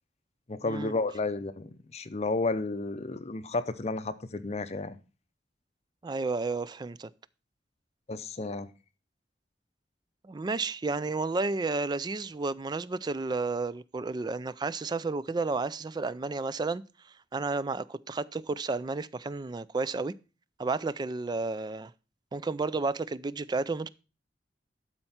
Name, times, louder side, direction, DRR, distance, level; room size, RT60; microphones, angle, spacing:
voice 1, 0.5-5.0 8.1-8.7, left 3 dB, 35° left, 0.6 m, -32 dB
voice 2, 6.0-7.1 10.2-16.8 17.3-20.1 20.6-21.9 22.3-23.9, right 3 dB, 25° right, 0.3 m, -32 dB
12.0 x 4.4 x 5.6 m
head